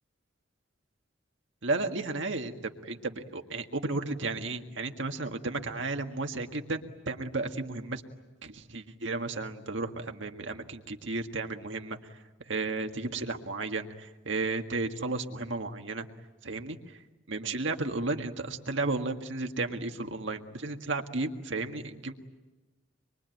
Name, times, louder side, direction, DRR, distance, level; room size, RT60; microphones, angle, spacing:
voice 1, 1.6-6.8 7.1-8.0 8.4-12.2 12.5-16.1 16.4-16.8 17.3-22.1, right 3 dB, 70° right, 5 dB, 1.8 m, -33 dB
25.5 x 23.5 x 9.2 m, 1.1 s
head